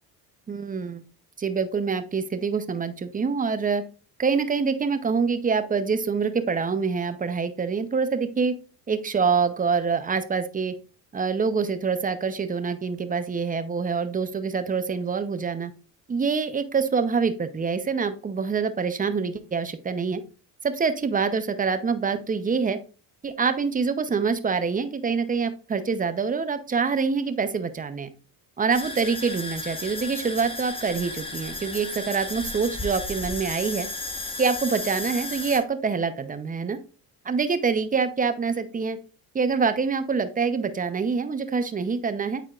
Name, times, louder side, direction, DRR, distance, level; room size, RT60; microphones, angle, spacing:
voice 1, 0.5-1.0 1.4-3.8 4.2-8.5 8.9-10.7 11.1-15.7 16.1-20.2 20.6-22.8 23.2-28.1 28.6-33.9 34.4-36.8 37.2-39.0 39.3-42.4, right 5 dB, 20° right, 10 dB, 0.6 m, -25 dB
sound 1, 28.7-35.6, left 2 dB, 10° left, 1.0 m, -34 dB
8.8 x 4.5 x 2.4 m, 0.36 s
supercardioid pair, 85°, 47 cm